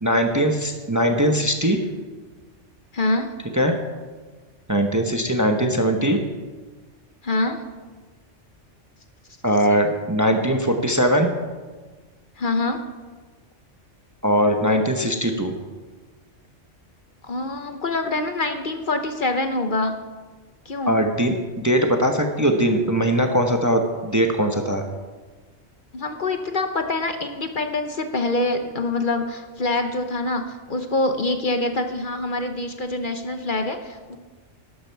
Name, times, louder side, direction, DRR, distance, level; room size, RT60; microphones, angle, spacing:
voice 1, 0.0-1.8 3.5-3.8 4.7-6.2 9.4-11.3 14.2-15.5 20.9-24.8, equal, 15° right, 4 dB, 0.8 m, -20 dB
voice 2, 2.9-3.3 7.2-7.6 12.4-12.8 17.2-20.0 20.7-21.0 25.9-34.2, left 2 dB, 45° left, 7 dB, 0.9 m, -25 dB
12.5 x 12.0 x 4.6 m, 1.4 s
omnidirectional pair, 1.2 m